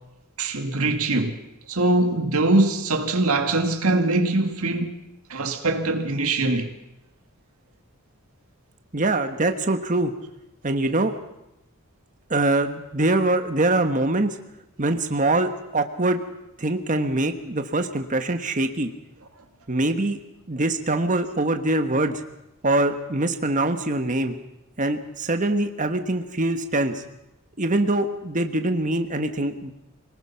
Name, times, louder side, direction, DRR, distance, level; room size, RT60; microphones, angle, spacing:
voice 1, 0.4-1.4 1.7-5.0 5.3-6.7, right 2 dB, 80° right, 2.1 m, -22 dB
voice 2, 8.9-10.1 10.6-11.1 12.3-14.4 14.8-16.2 16.6-18.9 19.7-20.2 20.5-22.2 22.6-24.3 24.8-27.0 27.6-29.7, right 2 dB, 35° right, 1.4 m, -23 dB
25.5 x 19.0 x 5.9 m
head